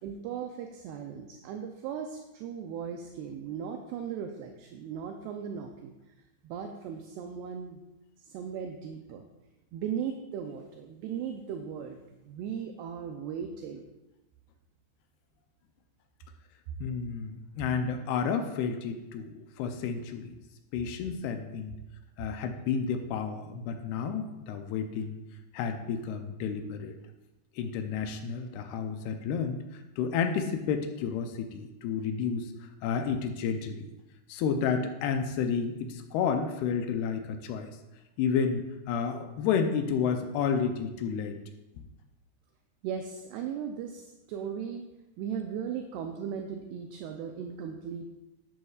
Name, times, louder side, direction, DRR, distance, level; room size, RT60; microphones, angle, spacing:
voice 1, 0.0-5.9 6.4-7.8 8.2-9.3 9.7-13.9 42.8-44.9 45.2-48.1, right 7 dB, 80° right, 4 dB, 2.5 m, -37 dB
voice 2, 16.8-20.3 20.7-21.8 22.2-25.2 25.5-26.9 27.6-33.9 34.3-37.7 38.2-41.4, left 6 dB, 80° left, 6 dB, 2.4 m, -31 dB
11.0 x 10.5 x 2.4 m, 0.98 s
omnidirectional pair, 5.1 m